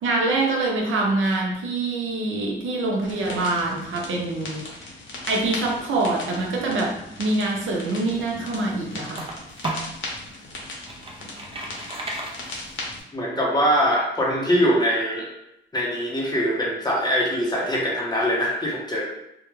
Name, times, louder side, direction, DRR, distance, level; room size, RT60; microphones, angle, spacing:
voice 1, 0.0-4.7 5.3-9.3, right 2 dB, 85° right, 0 dB, 0.6 m, -25 dB
sound 1, 3.0-13.0, left 2 dB, 80° left, 0.7 m, -38 dB
sound 2, 7.9-10.0 10.5-13.0, right 2 dB, 30° right, 0.5 m, -34 dB
voice 2, 13.1-15.3 15.7-19.1, equal, 20° left, -3 dB, 0.6 m, -22 dB
2.3 x 2.1 x 3.0 m, 0.82 s
wide cardioid pair, 140°, 20 cm